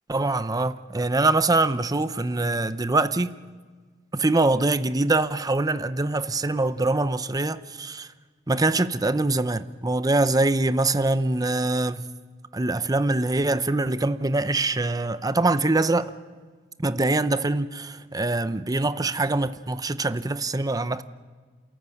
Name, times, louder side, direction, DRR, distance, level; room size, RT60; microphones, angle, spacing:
voice 1, 0.1-3.3 4.1-8.1 8.5-12.1 12.5-16.1 16.8-21.0, right 2 dB, 20° right, 0.7 m, -24 dB
28.0 x 14.0 x 9.3 m
head